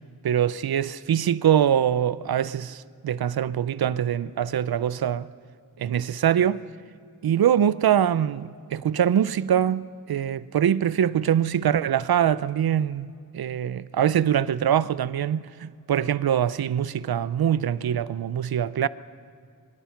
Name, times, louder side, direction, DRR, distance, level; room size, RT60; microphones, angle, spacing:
voice 1, 0.2-5.3 5.8-6.6 7.2-13.1 13.3-18.9, right 9 dB, 85° right, 0.6 m, -23 dB
26.5 x 22.5 x 5.9 m
cardioid pair, 45°, 36 cm